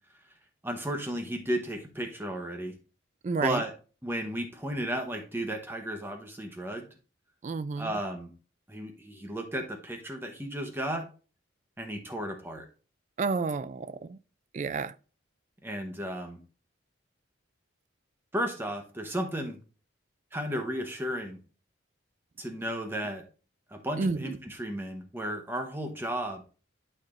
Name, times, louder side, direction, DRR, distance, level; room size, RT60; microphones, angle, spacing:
voice 1, 0.6-2.7 3.4-3.7 4.0-6.9 7.8-8.3 8.7-11.1 11.8-12.7 15.6-16.4 18.3-19.6 20.3-21.4 22.4-23.2 23.7-26.4, right 1 dB, 10° right, 0.9 m, -34 dB
voice 2, 3.2-3.6 7.4-8.0 13.2-14.2 14.5-14.9 24.0-24.4, right 4 dB, 40° right, 0.3 m, -30 dB
11.5 x 4.4 x 2.5 m
head